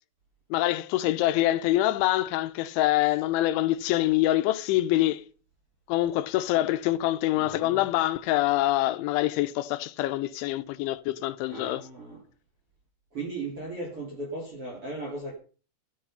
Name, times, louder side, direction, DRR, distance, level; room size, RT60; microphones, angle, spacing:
voice 1, 0.5-5.2 5.9-11.8, left 15 dB, 80° left, 3.2 m, -25 dB
voice 2, 7.3-7.8 11.5-12.2 13.1-15.3, right 2 dB, 35° right, 3.3 m, -37 dB
13.5 x 12.0 x 5.6 m
omnidirectional pair, 5.5 m